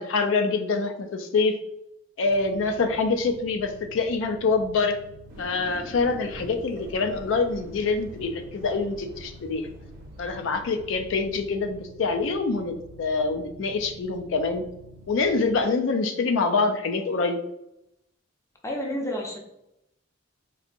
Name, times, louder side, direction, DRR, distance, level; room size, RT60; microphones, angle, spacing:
voice 1, 0.0-1.6 2.2-5.0 5.4-9.7 10.2-14.7 15.1-17.4, left 4 dB, 70° left, 6 dB, 0.4 m, -25 dB
sound 1, 2.2-15.6, equal, 65° right, 0.4 m, -48 dB
sound 2, 5.3-11.6, equal, 45° right, 0.8 m, -45 dB
voice 2, 18.6-19.4, equal, 15° left, 0 dB, 0.5 m, -30 dB
4.0 x 2.6 x 2.5 m, 0.83 s
head